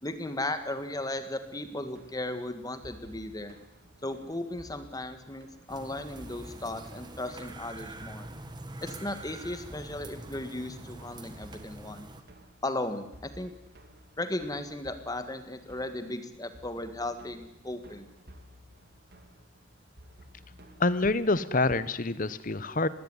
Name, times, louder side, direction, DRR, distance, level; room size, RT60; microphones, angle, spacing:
voice 1, 0.0-3.6 4.0-8.3 8.8-12.1 12.6-13.5 14.2-18.1, left 1 dB, 20° left, 9 dB, 1.8 m, -36 dB
sound 1, 1.4-21.2, equal, 50° right, 2.4 m, -55 dB
sound 2, 5.7-12.2, right 2 dB, 20° right, 1.7 m, -45 dB
voice 2, 20.8-22.9, left 3 dB, 40° left, 16 dB, 0.9 m, -26 dB
20.5 x 16.5 x 9.8 m, 0.86 s
head